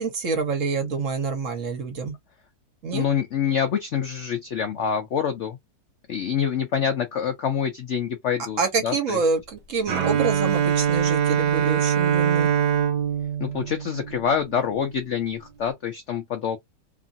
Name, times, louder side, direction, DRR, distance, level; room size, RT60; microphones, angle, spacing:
voice 1, 0.0-2.1 2.8-3.0 8.6-12.5, right 4 dB, 55° right, 1.1 m, -27 dB
voice 2, 2.9-5.6 6.1-9.2 13.4-16.6, left 8 dB, 80° left, 0.6 m, -26 dB
Bowed string instrument, 9.9-14.7, right 9 dB, 75° right, 1.3 m, -23 dB
2.9 x 2.5 x 2.5 m
omnidirectional pair, 1.9 m